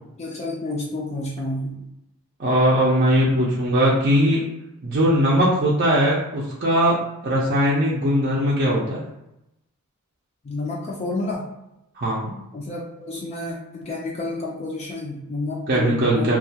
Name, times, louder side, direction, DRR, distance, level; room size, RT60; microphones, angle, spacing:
voice 1, 0.2-1.8 10.4-11.5 12.5-16.4, left 2 dB, 30° left, -3 dB, 0.4 m, -30 dB
voice 2, 2.4-4.4 4.8-9.1 12.0-12.4 15.7-16.4, equal, 45° right, -6 dB, 0.5 m, -20 dB
2.3 x 2.2 x 2.7 m, 0.87 s
head